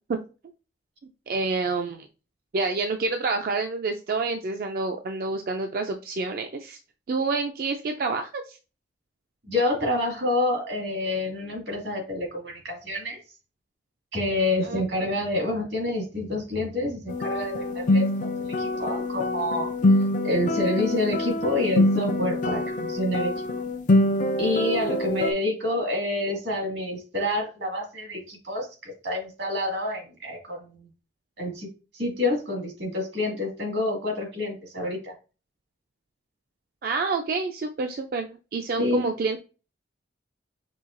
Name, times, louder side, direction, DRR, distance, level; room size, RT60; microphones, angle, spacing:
voice 1, 1.3-2.1 2.5-6.8 7.1-8.6 14.6-14.8 36.8-39.4, right 3 dB, 55° right, 5 dB, 0.3 m, -28 dB
voice 2, 9.5-13.2 14.1-19.7 20.2-23.5 24.4-30.9 31.4-35.1 38.8-39.1, left 1 dB, 85° right, 0 dB, 2.1 m, -28 dB
sound 1, 17.1-25.3, left 1 dB, 45° left, 0.4 m, -25 dB
5.5 x 2.7 x 2.5 m, 0.33 s
head